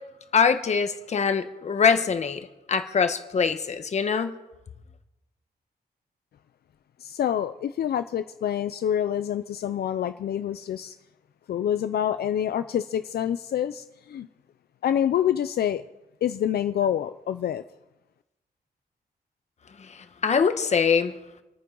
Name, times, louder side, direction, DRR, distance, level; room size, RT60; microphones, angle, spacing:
voice 1, 0.3-2.4 2.7-4.3 19.8-21.1, left 6 dB, 45° left, 8 dB, 1.1 m, -23 dB
voice 2, 7.0-11.0 11.5-14.3 14.8-15.8 16.2-17.6, left 10 dB, 75° left, 11 dB, 0.5 m, -27 dB
26.5 x 9.4 x 3.9 m, 0.97 s
wide cardioid pair, 165°, 16 cm